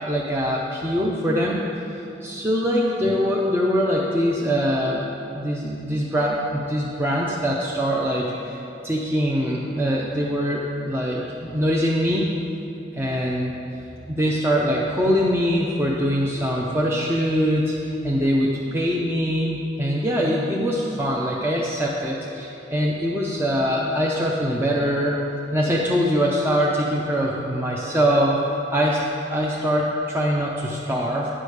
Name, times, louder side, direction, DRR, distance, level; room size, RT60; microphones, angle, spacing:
voice 1, 0.0-1.6 1.9-5.0 5.3-12.3 12.9-13.6 14.1-25.2 25.5-29.0 29.3-31.3, equal, 15° right, -3 dB, 0.6 m, -23 dB
9.9 x 5.0 x 6.5 m, 2.9 s
head